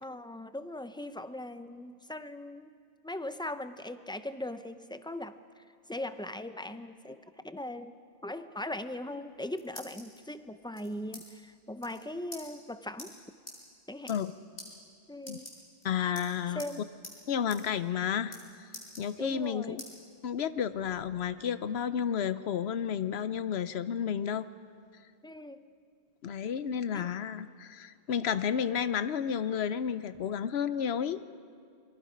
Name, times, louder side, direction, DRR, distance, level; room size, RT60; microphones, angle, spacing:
voice 1, 0.0-2.7 3.0-5.4 5.9-7.2 7.4-7.9 8.2-13.1 13.9-14.1 15.1-15.5 16.6-16.9 19.2-19.8 25.2-25.6 26.9-27.1, left 1 dB, 5° left, 11 dB, 0.5 m, -39 dB
sound 1, 9.2-10.2 10.7-11.2 11.5-11.6 11.8-12.0 12.3-12.4 13.0-13.1 13.5-13.6 14.0-14.3 14.6-14.7 15.2-15.8 16.2-16.7 17.0-17.2 17.5-17.6 17.9-18.4 18.7-19.4 19.8-19.9 20.4-21.3, left 1 dB, 65° left, 5.0 m, -46 dB
voice 2, 15.8-16.6 17.3-18.4 19.0-19.8 20.2-24.4 26.2-31.2, left 8 dB, 80° left, 13 dB, 1.0 m, -31 dB
28.0 x 22.5 x 5.1 m, 2.2 s
omnidirectional pair, 1.0 m